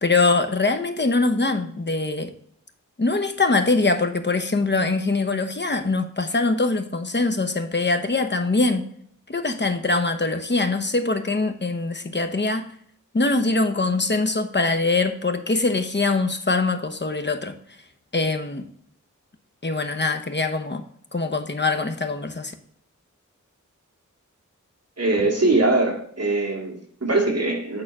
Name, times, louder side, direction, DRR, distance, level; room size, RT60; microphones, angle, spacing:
voice 1, 0.0-2.3 3.0-8.8 9.3-12.7 13.1-17.5 18.1-18.7 19.6-20.8 21.1-22.5, left 3 dB, 35° left, 7 dB, 1.0 m, -23 dB
voice 2, 25.0-27.8, right 2 dB, 50° right, -2 dB, 2.3 m, -22 dB
8.8 x 4.0 x 6.0 m, 0.65 s
wide cardioid pair, 60°, 31 cm